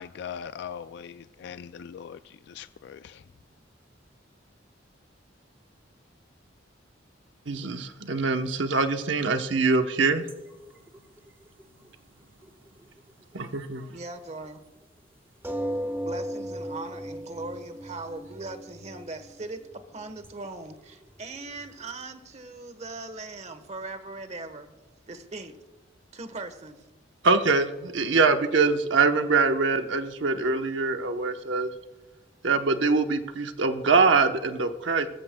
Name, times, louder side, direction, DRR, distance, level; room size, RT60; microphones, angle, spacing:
voice 1, 0.0-3.2, left 7 dB, 65° left, 0.3 m, -40 dB
voice 2, 7.5-10.2 13.3-13.9 27.2-31.7 32.4-35.1, right 4 dB, 75° right, 0.9 m, -23 dB
sound 1, 10.3-11.9 12.4-13.6 13.9-14.0 14.4-14.5 15.3-22.0, equal, 15° right, 1.2 m, -37 dB
voice 3, 13.9-14.6 16.0-24.7 25.1-25.5 26.1-26.8, right 2 dB, 35° right, 1.2 m, -39 dB
21.0 x 14.0 x 2.2 m
head